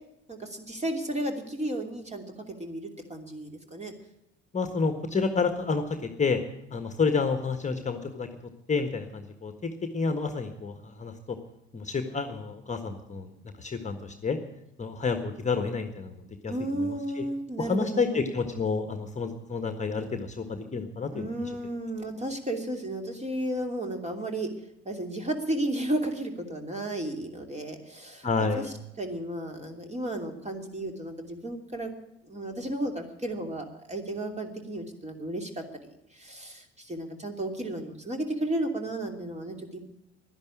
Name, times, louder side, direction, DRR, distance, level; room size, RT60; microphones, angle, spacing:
voice 1, 0.3-3.9 16.5-18.3 21.1-24.5 24.8-28.3 28.6-28.7 29.0-31.9 32.3-39.8, right 1 dB, 20° right, 4 dB, 2.9 m, -33 dB
voice 2, 4.5-6.4 6.7-8.3 8.7-9.5 9.9-11.4 11.7-13.3 13.6-14.4 14.8-17.2 17.6-21.3 28.2-28.7, left 4 dB, 20° left, 7 dB, 1.5 m, -29 dB
12.0 x 10.5 x 10.0 m, 0.84 s
hypercardioid pair, 70°, 33 cm